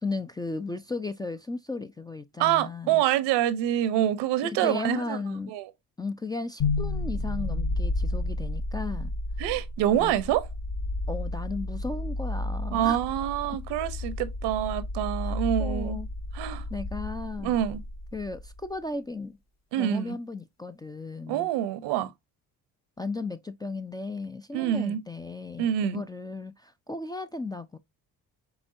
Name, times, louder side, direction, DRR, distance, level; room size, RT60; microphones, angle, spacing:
voice 1, 0.0-3.0 4.4-5.5 6.0-9.1 10.0-10.1 11.1-13.0 13.5-13.6 15.2-16.1 16.7-17.6 18.1-19.4 19.8-21.5 23.0-27.8, left 3 dB, 10° left, 0.3 m, -35 dB
voice 2, 2.4-5.2 5.5-5.7 9.4-10.5 12.7-16.0 16.3-16.6 17.4-17.8 19.7-20.1 21.3-22.1 24.5-25.0 25.6-26.0, right 11 dB, 80° right, 0.7 m, -26 dB
sound 1, 6.6-18.7, left 2 dB, 40° left, 1.0 m, -32 dB
5.0 x 3.5 x 2.5 m
supercardioid pair, 60°, 41 cm